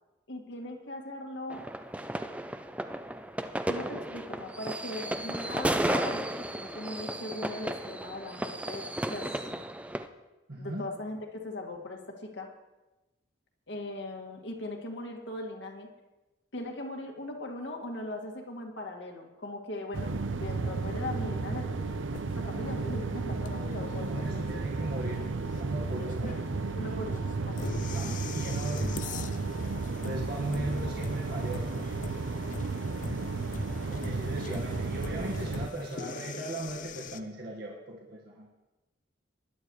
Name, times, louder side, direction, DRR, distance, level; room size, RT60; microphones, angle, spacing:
voice 1, 0.3-1.6 3.6-8.8 9.1-9.3 10.6-12.5 13.7-15.9 16.5-21.7 22.4-24.6 26.7-27.9, left 1 dB, 70° left, 1 dB, 2.1 m, -39 dB
sound 1, 1.5-10.1, right 1 dB, 5° right, 0.5 m, -34 dB
voice 2, 10.5-10.8 23.9-26.4 27.9-29.0 30.0-31.7 34.0-38.5, right 1 dB, 55° right, -3 dB, 1.7 m, -37 dB
sound 2, 19.9-35.7, right 3 dB, 80° right, 0.7 m, -33 dB
sound 3, 22.1-37.2, left 4 dB, 45° left, 0.5 m, -43 dB
20.0 x 11.5 x 3.2 m, 1.1 s
head